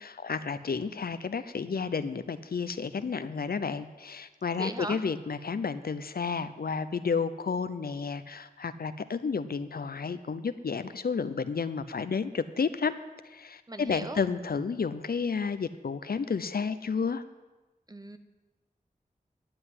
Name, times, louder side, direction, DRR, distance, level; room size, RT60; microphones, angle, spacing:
voice 1, 0.0-12.9 13.2-17.2, left 5 dB, 80° left, 13 dB, 0.7 m, -31 dB
voice 2, 4.6-5.0 13.7-14.2 17.9-18.2, right 2 dB, 25° right, 8 dB, 1.0 m, -37 dB
11.5 x 7.9 x 9.6 m, 1.1 s
wide cardioid pair, 70°, 15 cm